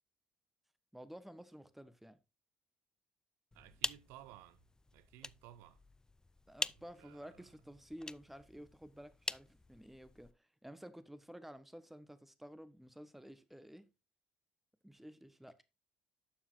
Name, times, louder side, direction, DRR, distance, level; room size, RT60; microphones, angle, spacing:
voice 1, 0.9-2.2 6.5-13.9 14.8-15.5, equal, 5° right, 1.2 m, -52 dB
sound 1, 3.5-10.3, left 3 dB, 15° left, 0.4 m, -45 dB
voice 2, 3.5-4.7 4.9-5.8 6.7-7.5, right 13 dB, 80° right, 0.5 m, -57 dB
11.5 x 7.1 x 2.7 m
hypercardioid pair, 55°, 4 cm